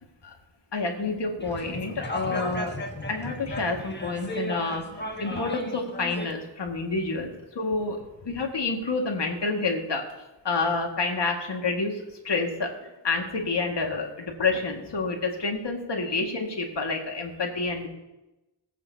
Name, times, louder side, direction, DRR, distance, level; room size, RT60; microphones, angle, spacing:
voice 1, 0.7-10.0 10.4-17.9, left 3 dB, 65° left, 1 dB, 2.0 m, -29 dB
sound 1, 1.4-6.3, left 1 dB, 25° left, 1.5 m, -35 dB
21.5 x 8.4 x 2.8 m, 1.0 s
wide cardioid pair, 70°, 45 cm